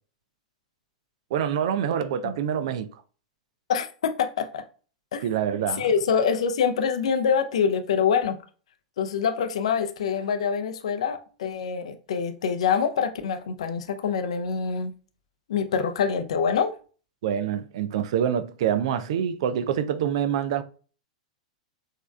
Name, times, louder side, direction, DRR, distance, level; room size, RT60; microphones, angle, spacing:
voice 1, 1.3-2.9 5.2-5.9 17.2-20.6, right 9 dB, 50° right, 0.5 m, -26 dB
voice 2, 3.7-4.6 5.1-5.2 5.8-8.4 9.0-14.9 15.5-16.7, left 6 dB, 60° left, 0.6 m, -25 dB
6.4 x 3.4 x 2.3 m
figure-of-eight pair, 95°, 4 cm